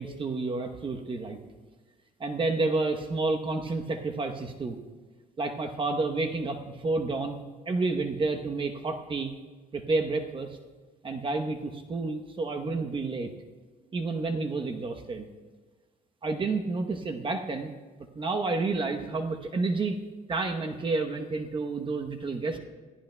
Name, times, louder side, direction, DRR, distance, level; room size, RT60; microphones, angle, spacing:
voice 1, 0.0-1.4 2.2-4.8 5.4-9.3 9.7-10.6 11.0-13.3 13.9-15.3 16.2-17.7 18.1-20.0 20.3-22.6, right 3 dB, 30° right, 4 dB, 0.9 m, -30 dB
21.0 x 14.0 x 2.2 m, 1.4 s
cardioid pair, 110°, 17 cm